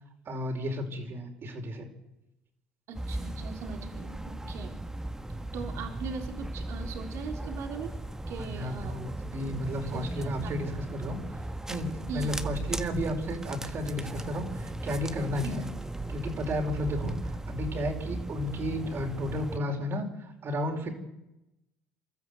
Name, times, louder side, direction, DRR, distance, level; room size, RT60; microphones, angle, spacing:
voice 1, 0.3-1.9 8.3-11.2 11.7-15.7 16.1-20.1 20.4-20.9, equal, 50° right, 3 dB, 4.8 m, -33 dB
sound 1, 2.9-19.6, right 1 dB, 10° right, 1.5 m, -37 dB
voice 2, 2.9-4.7 5.5-8.0 8.3-9.0 9.8-10.5 10.8-10.9 12.1-12.4 15.4-15.6, right 5 dB, 65° right, 3 dB, 3.8 m, -40 dB
28.0 x 13.0 x 8.1 m, 0.93 s
hypercardioid pair, 75°, 5 cm